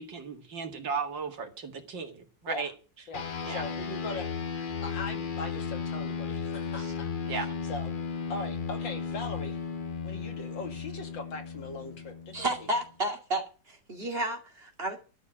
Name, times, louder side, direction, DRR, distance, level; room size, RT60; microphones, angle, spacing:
voice 1, 0.0-2.7 3.4-3.6 6.8-6.9 7.3-7.5, right 5 dB, 75° right, 2.7 m, -35 dB
voice 2, 3.1-4.3 4.8-7.9 8.3-9.7 10.0-12.5, left 3 dB, 80° left, 3.0 m, -40 dB
sound 1, 3.1-12.9, left 6 dB, 55° left, 0.5 m, -35 dB
voice 3, 12.3-15.0, right 1 dB, 30° right, 2.7 m, -32 dB
12.5 x 6.9 x 8.7 m
omnidirectional pair, 2.0 m